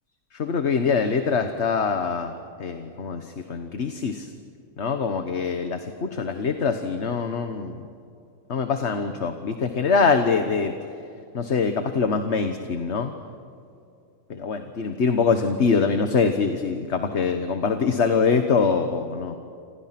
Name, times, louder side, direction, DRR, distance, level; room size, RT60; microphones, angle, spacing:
voice 1, 0.3-2.3 2.6-4.3 4.8-7.9 8.5-10.8 11.3-13.1 14.3-19.4, left 5 dB, 55° left, 7 dB, 1.6 m, -24 dB
28.5 x 28.0 x 6.0 m, 2.6 s
omnidirectional pair, 1.5 m